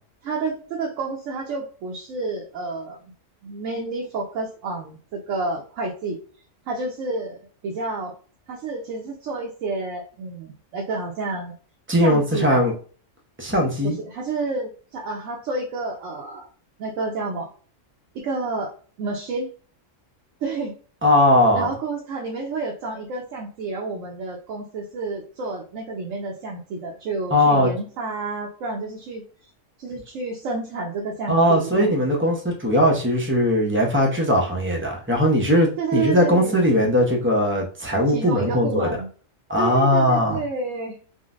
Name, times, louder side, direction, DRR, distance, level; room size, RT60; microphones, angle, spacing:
voice 1, 0.2-3.0 3.4-6.2 6.7-8.1 8.5-11.5 12.0-12.6 13.8-16.5 16.8-17.5 18.2-18.7 19.0-19.5 20.4-20.7 21.5-29.2 29.8-32.0 35.8-36.6 38.1-39.1 39.6-41.0, right 3 dB, 75° right, -1 dB, 1.0 m, -29 dB
voice 2, 11.9-12.7 13.4-14.0 21.0-21.7 27.3-27.7 31.3-39.0 39.5-40.4, left 1 dB, 20° right, 0 dB, 0.3 m, -19 dB
3.8 x 2.1 x 2.4 m, 0.42 s
omnidirectional pair, 1.4 m